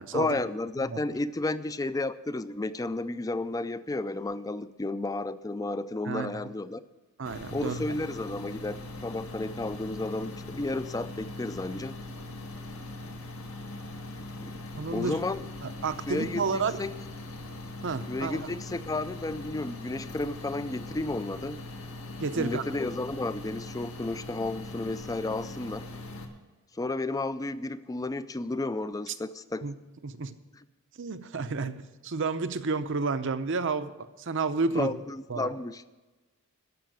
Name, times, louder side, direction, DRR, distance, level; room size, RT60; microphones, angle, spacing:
voice 1, 0.1-6.8 7.5-12.0 14.4-14.5 14.9-15.4 16.1-16.9 18.1-21.6 22.4-25.9 26.7-29.6 34.8-35.8, left 2 dB, 15° left, 14 dB, 0.4 m, -32 dB
voice 2, 6.1-6.4 7.2-7.8 14.8-15.2 15.6-16.8 17.8-18.5 22.2-22.6 29.1-29.2 29.6-29.7 30.0-30.3 31.0-33.9 34.2-34.9 35.3-35.5, right 4 dB, 60° right, 10 dB, 0.7 m, -31 dB
sound 1, 7.3-26.3, left 2 dB, 75° left, 1.6 m, -41 dB
14.0 x 5.7 x 9.1 m, 1.2 s
head